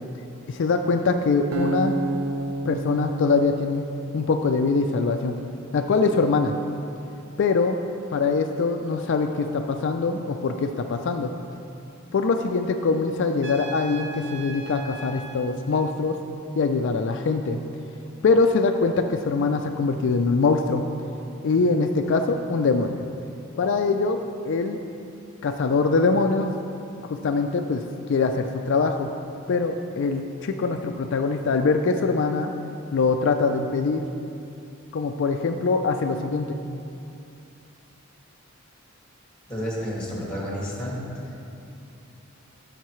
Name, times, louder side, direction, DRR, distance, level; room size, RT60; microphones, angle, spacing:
voice 1, 0.5-2.0 2.7-3.8 4.1-5.3 5.7-6.5 7.4-7.8 8.1-11.3 12.1-16.2 16.6-17.6 18.2-20.8 21.4-23.0 23.6-24.2 24.4-24.8 25.4-26.5 27.2-27.8 28.1-29.1 29.5-32.5 32.9-34.0 34.9-36.6, left 4 dB, 60° left, 5 dB, 0.4 m, -23 dB
Acoustic guitar, 1.5-4.7, right 2 dB, 75° right, 0.5 m, -30 dB
Trumpet, 13.4-15.4, right 3 dB, 55° right, 0.8 m, -39 dB
voice 2, 39.5-41.0, equal, 5° left, -5 dB, 1.9 m, -30 dB
13.0 x 6.5 x 3.1 m, 2.7 s
head